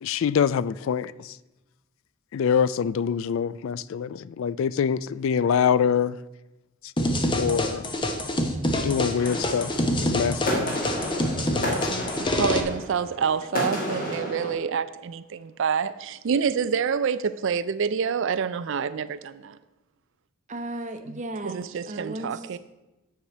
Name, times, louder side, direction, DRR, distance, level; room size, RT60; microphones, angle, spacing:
voice 1, 0.0-1.4 2.3-6.2 7.4-7.9 8.7-10.8 11.4-12.1, left 7 dB, 60° left, 0.3 m, -25 dB
sound 1, 7.0-12.6, left 1 dB, 20° left, 0.9 m, -26 dB
sound 2, 9.2-14.5, equal, 40° left, 2.0 m, -31 dB
voice 2, 12.3-19.6 21.1-22.6, right 6 dB, 60° right, 0.4 m, -27 dB
voice 3, 20.5-22.4, right 2 dB, 35° right, 0.9 m, -35 dB
10.0 x 4.8 x 7.8 m
head